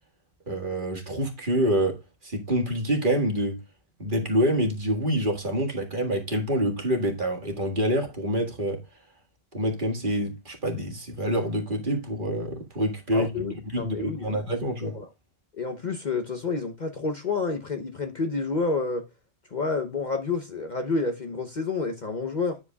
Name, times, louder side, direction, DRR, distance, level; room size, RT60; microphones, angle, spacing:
voice 1, 0.5-2.0 2.2-3.6 4.0-8.8 9.5-13.3 13.7-15.0, equal, 45° right, 1.9 m, -26 dB
voice 2, 13.1-14.3 14.8-15.1 15.6-19.1 19.5-22.6, left 4 dB, 40° left, 0.9 m, -29 dB
9.6 x 7.8 x 2.3 m
omnidirectional pair, 1.3 m